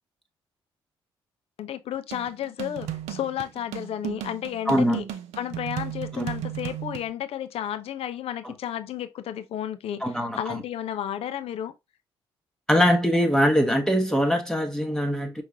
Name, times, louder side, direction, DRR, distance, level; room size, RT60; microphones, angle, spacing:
voice 1, 1.6-5.0 5.4-11.7, left 10 dB, 50° left, 0.6 m, -32 dB
sound 1, 2.1-7.1, right 11 dB, 60° right, 0.6 m, -35 dB
voice 2, 4.7-5.0 6.1-6.3 8.4-8.5 10.0-10.6 12.7-15.4, equal, 5° left, 0.9 m, -22 dB
5.8 x 3.2 x 2.7 m
figure-of-eight pair, 40°, 12 cm